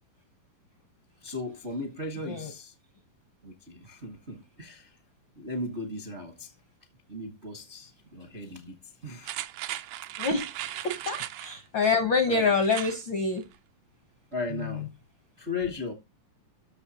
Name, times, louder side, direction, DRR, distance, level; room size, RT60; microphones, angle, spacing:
voice 1, 1.2-2.8 3.4-5.0 5.3-6.5 7.1-9.4 10.6-10.7 12.3-12.5 14.3-14.9 15.4-15.9, left 2 dB, 50° right, 0.7 m, -37 dB
sound 1, 9.2-11.6 12.6-13.0 13.4-13.5, right 14 dB, 75° right, 2.1 m, -37 dB
voice 2, 10.2-10.5 10.8-13.5, left 4 dB, 80° left, 1.0 m, -26 dB
13.0 x 6.9 x 3.0 m
omnidirectional pair, 4.2 m